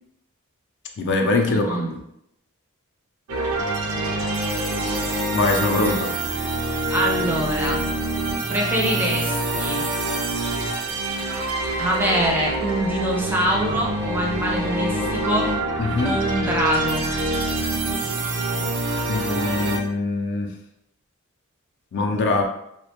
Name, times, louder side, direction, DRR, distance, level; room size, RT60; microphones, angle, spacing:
voice 1, 1.0-2.0 5.3-6.1 15.8-16.2 19.1-20.5 21.9-22.4, left 3 dB, 55° left, 3 dB, 0.4 m, -23 dB
voice 2, 1.5-1.9 6.9-7.9 8.5-9.8 11.8-15.5 16.0-17.1, right 1 dB, 10° right, -2 dB, 0.4 m, -24 dB
sound 1, 3.3-19.8, right 2 dB, 70° right, 0.5 m, -25 dB
2.4 x 2.1 x 2.9 m, 0.77 s
head